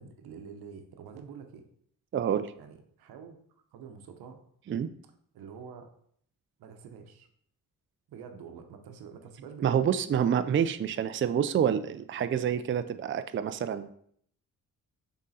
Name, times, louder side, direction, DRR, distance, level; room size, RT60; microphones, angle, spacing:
voice 1, 0.0-1.7 2.6-3.4 3.7-4.4 5.3-5.9 6.6-7.3 8.1-9.8, right 6 dB, 85° right, 6 dB, 0.9 m, -47 dB
voice 2, 2.1-2.5 4.7-4.9 9.6-13.9, right 8 dB, 35° right, 11 dB, 0.4 m, -27 dB
6.1 x 3.8 x 4.1 m, 0.65 s
cardioid pair, 60°, 36 cm